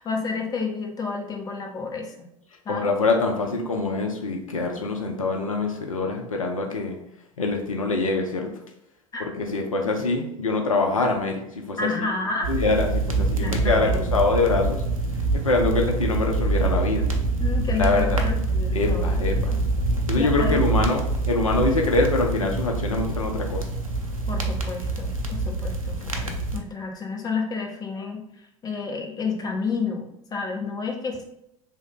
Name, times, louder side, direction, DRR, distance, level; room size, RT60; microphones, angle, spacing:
voice 1, 0.0-2.1 2.7-2.9 9.1-9.2 11.8-12.5 13.4-14.0 17.4-19.3 20.2-20.6 24.3-28.2 28.6-31.2, left 4 dB, 20° left, 1 dB, 0.6 m, -30 dB
voice 2, 2.7-7.0 7.4-8.5 9.2-12.1 12.5-14.8 15.3-17.1 17.7-18.2 18.7-19.5 20.1-23.7, left 3 dB, 80° left, 2 dB, 0.4 m, -24 dB
sound 1, 12.4-26.6, right 2 dB, 90° right, 0.4 m, -25 dB
3.1 x 2.0 x 3.7 m, 0.80 s
figure-of-eight pair, 75°, 17 cm